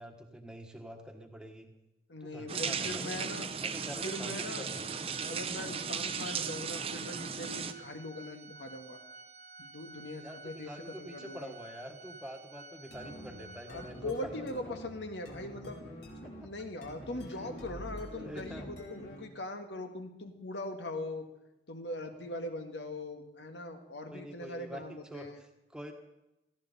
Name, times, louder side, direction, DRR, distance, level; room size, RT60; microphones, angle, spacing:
voice 1, 0.0-1.7 2.2-3.1 3.6-4.8 10.2-14.7 16.2-16.5 17.3-17.5 18.2-18.8 24.1-25.9, equal, 5° right, 4 dB, 1.4 m, -46 dB
voice 2, 2.1-3.5 4.0-4.7 5.3-9.0 9.6-10.7 11.0-11.5 13.7-15.8 16.4-21.3 21.7-25.4, left 1 dB, 85° left, 5 dB, 1.7 m, -41 dB
sound 1, 2.5-7.7, right 6 dB, 35° right, 0.7 m, -36 dB
Organ, 3.7-14.4, right 3 dB, 65° right, 1.2 m, -52 dB
sound 2, 12.9-19.4, equal, 65° left, 3.4 m, -47 dB
17.5 x 14.5 x 4.2 m, 0.93 s
head